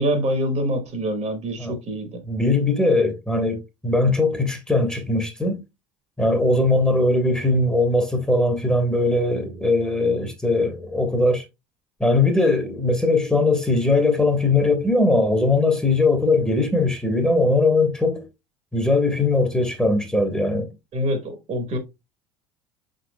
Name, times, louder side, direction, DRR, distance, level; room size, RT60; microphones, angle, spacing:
voice 1, 0.0-2.2 6.6-6.7 20.9-21.8, equal, 45° right, 1.4 m, -25 dB
voice 2, 2.3-5.6 6.2-11.4 12.0-18.2 18.7-20.7, left 2 dB, 5° left, 1.2 m, -20 dB
5.5 x 3.9 x 2.2 m
hypercardioid pair, 70°, 17 cm